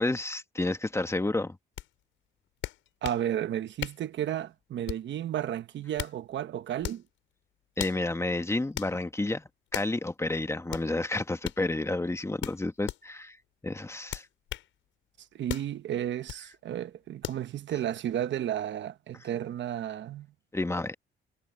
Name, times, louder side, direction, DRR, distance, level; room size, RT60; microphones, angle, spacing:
voice 1, 0.0-1.6 7.8-9.4 9.7-13.4 13.6-14.3 20.5-20.9, left 2 dB, 15° left, 1.4 m, -30 dB
sound 1, 1.8-1.9 2.6-3.2 3.8-4.1 4.9-5.2 5.7-6.2 6.8-7.1 7.8-8.0 8.8-8.9 9.7-10.0 10.7-10.9 11.4-11.6 12.4-13.0 14.1-14.7 15.5-15.7 16.3-16.4 17.2-17.4, left 13 dB, 85° left, 6.7 m, -37 dB
voice 2, 3.0-7.0 15.3-20.3, right 11 dB, 65° right, 1.1 m, -33 dB
cardioid pair, 90°, 20 cm